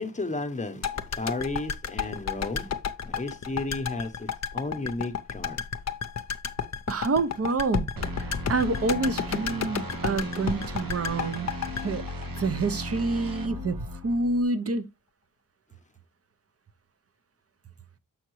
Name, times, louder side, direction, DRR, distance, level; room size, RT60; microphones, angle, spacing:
voice 1, 0.0-2.8 3.0-5.6, left 2 dB, 20° left, 0.8 m, -33 dB
sound 1, 0.8-13.0 13.3-13.4, left 6 dB, 50° left, 0.6 m, -32 dB
voice 2, 6.9-7.9 8.2-11.5 11.8-12.0 12.3-14.9, right 3 dB, 45° right, 0.7 m, -27 dB
sound 2, 8.0-14.4, equal, 85° right, 1.3 m, -36 dB
7.1 x 5.8 x 3.1 m
wide cardioid pair, 105°, 34 cm